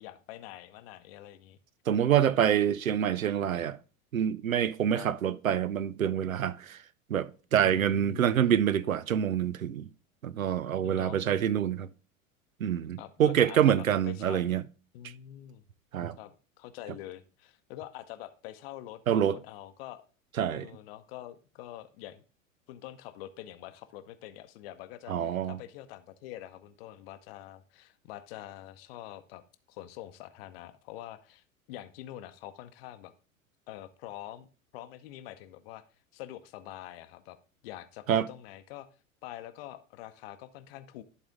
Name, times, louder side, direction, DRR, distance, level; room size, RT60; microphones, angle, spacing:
voice 1, 0.0-1.6 4.9-5.1 7.6-8.4 10.8-11.2 13.0-14.5 14.9-15.6 16.2-20.0 20.4-22.2 22.7-29.4 29.7-33.1 33.7-34.5 34.7-35.8 36.1-37.4 37.6-38.9 39.2-41.0, left 13 dB, 45° left, 0.7 m, -45 dB
voice 2, 1.9-3.8 4.1-6.8 7.1-9.9 10.2-11.9 12.6-14.6 15.9-16.2 19.1-19.4 20.4-20.7 25.1-25.6 38.1-38.3, right 9 dB, 85° right, 0.5 m, -26 dB
11.0 x 4.1 x 3.6 m
figure-of-eight pair, 85°, 41 cm